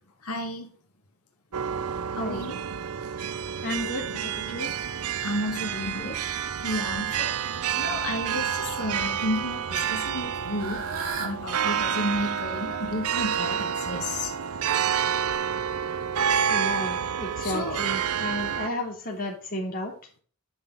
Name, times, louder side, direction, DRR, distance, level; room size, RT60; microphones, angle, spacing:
voice 1, 0.2-0.7 2.1-2.6 5.2-6.2 6.6-10.8 11.2-14.3 16.3-16.4 17.4-17.8 18.5-18.6, left 1 dB, 85° left, 1 dB, 2.0 m, -32 dB
sound 1, 1.5-18.7, right 8 dB, 90° right, 0.7 m, -29 dB
voice 2, 3.6-4.7 11.9-12.0 16.5-19.9, left 1 dB, 40° left, 0 dB, 3.5 m, -33 dB
Fowl / Bird, 10.0-15.3, right 5 dB, 65° right, 2.3 m, -40 dB
10.5 x 6.1 x 4.0 m, 0.41 s
head